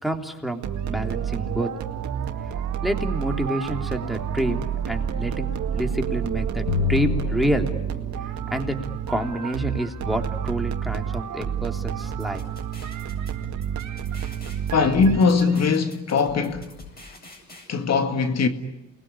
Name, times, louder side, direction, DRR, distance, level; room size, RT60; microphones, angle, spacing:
voice 1, 0.0-1.7 2.8-7.7 8.5-8.7 9.1-12.4, right 1 dB, ahead, 3.3 m, -28 dB
sound 1, 0.6-15.6, right 8 dB, 70° right, 2.0 m, -29 dB
sound 2, 6.7-8.5, left 8 dB, 85° left, 5.8 m, -28 dB
sound 3, 12.0-17.7, left 2 dB, 30° left, 8.0 m, -45 dB
voice 2, 14.7-16.7 17.7-18.5, left 5 dB, 60° left, 2.1 m, -20 dB
28.5 x 21.0 x 9.9 m
cardioid pair, 90°, 30 cm